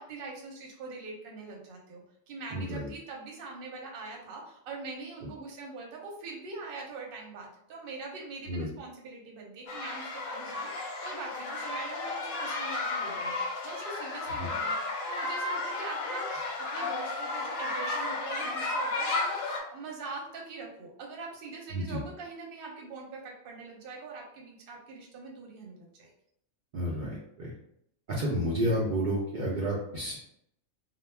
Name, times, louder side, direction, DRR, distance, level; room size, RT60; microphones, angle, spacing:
voice 1, 0.0-26.1, right 3 dB, 55° right, -1 dB, 0.7 m, -43 dB
voice 2, 2.5-2.9 8.5-8.7 21.7-22.0 26.7-27.5 28.1-30.2, equal, 85° right, -4 dB, 0.4 m, -30 dB
sound 1, 9.7-19.6, left 2 dB, 90° left, 1.0 m, -33 dB
2.3 x 2.0 x 3.3 m, 0.74 s
omnidirectional pair, 1.4 m